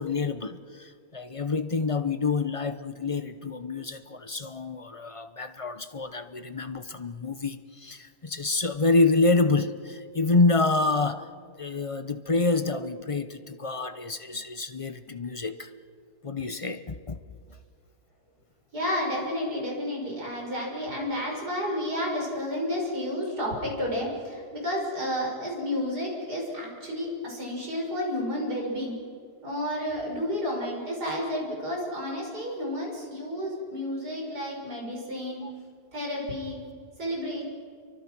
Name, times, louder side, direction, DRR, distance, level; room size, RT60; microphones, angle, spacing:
voice 1, 0.0-11.3 11.6-15.7 16.2-17.2 35.4-35.5, left 3 dB, 35° left, 0.5 m, -27 dB
voice 2, 18.7-28.9 29.4-35.4 35.9-36.6 37.0-37.4, left 1 dB, 75° right, 6.4 m, -31 dB
29.0 x 24.0 x 6.1 m
omnidirectional pair, 1.7 m